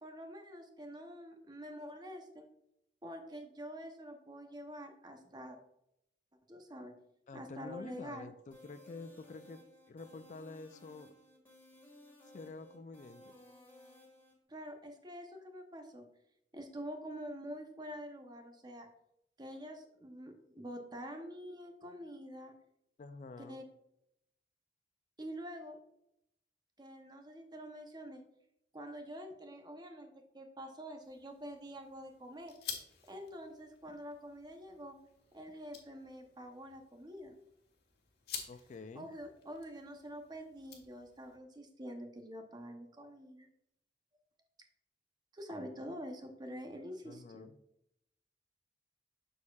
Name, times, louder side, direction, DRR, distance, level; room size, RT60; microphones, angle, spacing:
voice 1, 0.0-2.5 3.0-5.6 6.5-6.9 7.3-8.3 14.5-16.0 16.5-18.9 19.4-22.5 23.4-23.6 25.2-25.8 26.8-28.2 28.7-32.5 33.1-35.0 35.3-37.3 38.9-43.5 45.3-47.4, equal, 25° right, 5 dB, 0.8 m, -46 dB
voice 2, 7.3-9.6 9.9-11.1 12.3-13.3 23.0-23.6 38.5-39.1 47.0-47.6, left 3 dB, 45° left, 11 dB, 0.3 m, -48 dB
sound 1, 8.5-14.3, left 1 dB, 15° left, 1.8 m, -59 dB
sound 2, 31.0-41.4, left 7 dB, 65° left, 1.3 m, -51 dB
7.0 x 6.4 x 2.3 m, 0.80 s
head